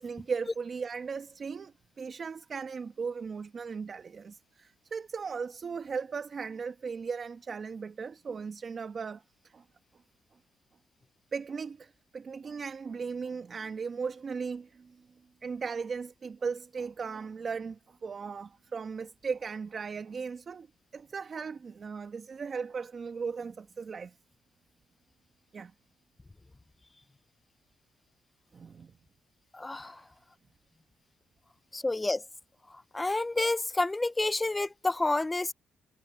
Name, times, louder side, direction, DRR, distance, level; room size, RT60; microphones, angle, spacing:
voice 1, 0.0-9.6 11.3-15.0 15.4-20.7 20.9-24.1 25.5-25.7 28.5-28.9 29.7-30.0, right 5 dB, 45° right, 1.5 m, -37 dB
voice 2, 29.5-30.0 31.7-32.2 32.9-35.5, left 2 dB, 15° left, 0.6 m, -29 dB
cardioid pair, 90°, 0 cm